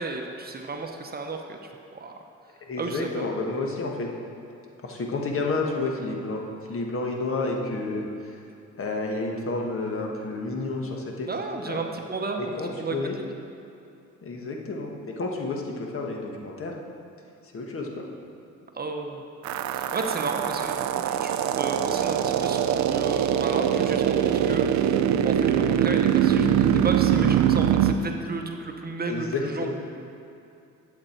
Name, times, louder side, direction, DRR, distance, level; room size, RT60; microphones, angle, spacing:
voice 1, 0.0-1.6 1.9-2.1 2.8-3.3 11.3-13.0 18.7-19.2 19.7-24.9 25.2-29.7, right 3 dB, 30° right, 3 dB, 0.9 m, -33 dB
voice 2, 2.7-4.1 4.8-8.1 8.8-11.3 11.7-11.8 12.4-13.1 14.2-16.7 17.5-18.2 29.1-29.7, left 3 dB, 45° left, 1 dB, 1.4 m, -30 dB
sound 1, 19.4-27.9, right 9 dB, 70° right, 0.5 m, -23 dB
10.5 x 7.7 x 4.4 m, 2.7 s
cardioid pair, 90°, 30 cm